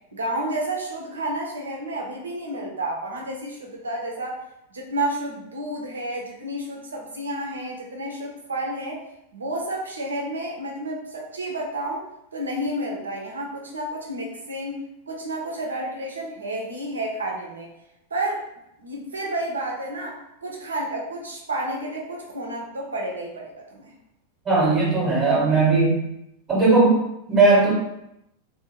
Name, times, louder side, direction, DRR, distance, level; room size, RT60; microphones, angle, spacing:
voice 1, 0.1-4.4 4.7-9.0 9.3-12.0 12.3-17.7 18.1-18.4 18.8-23.9, right 1 dB, 70° right, -1 dB, 0.6 m, -30 dB
voice 2, 24.4-26.0 26.5-27.7, right 3 dB, 20° right, -4 dB, 0.9 m, -18 dB
2.6 x 2.3 x 2.8 m, 0.82 s
figure-of-eight pair, 90°, 0 cm